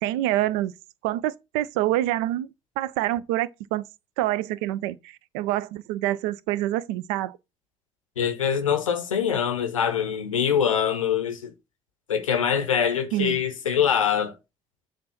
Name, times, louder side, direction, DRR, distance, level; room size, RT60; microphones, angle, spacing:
voice 1, 0.0-0.7 1.0-2.5 2.8-3.8 4.2-7.4 13.1-13.4, right 14 dB, 70° right, 0.4 m, -26 dB
voice 2, 8.2-11.5 12.1-14.3, left 8 dB, 90° left, 0.6 m, -24 dB
7.4 x 2.6 x 5.7 m
figure-of-eight pair, 45°, 16 cm